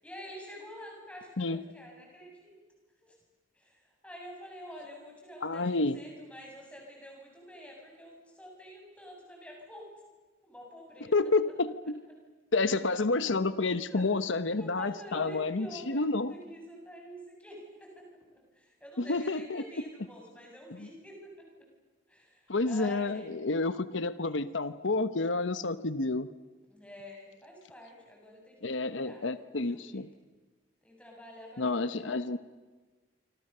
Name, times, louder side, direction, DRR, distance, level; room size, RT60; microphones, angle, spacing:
voice 1, 0.0-2.6 3.0-3.1 3.5-5.7 5.9-9.9 10.4-11.5 13.9-14.1 14.6-21.5 22.1-23.4 26.7-30.1 30.8-32.2, equal, 5° left, -1 dB, 7.2 m, -48 dB
voice 2, 5.4-6.0 11.1-11.9 12.5-16.3 19.0-19.6 20.8-20.9 22.5-26.3 28.6-30.1 31.6-32.4, left 3 dB, 85° left, 13 dB, 1.0 m, -29 dB
27.5 x 25.5 x 6.8 m, 1.3 s
head